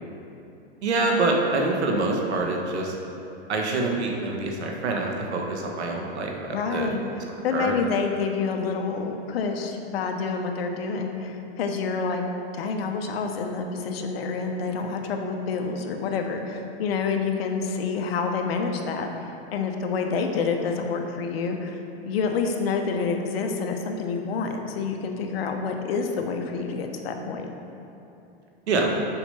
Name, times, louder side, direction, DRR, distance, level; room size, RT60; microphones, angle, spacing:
voice 1, 0.8-3.0 3.5-6.9 7.3-7.8 28.7-28.9, right 3 dB, 90° right, 1 dB, 1.3 m, -26 dB
voice 2, 6.5-7.0 7.4-12.2 12.5-27.5, left 5 dB, 65° left, 4 dB, 1.0 m, -28 dB
7.0 x 4.9 x 5.5 m, 2.9 s
hypercardioid pair, 140°, 32 cm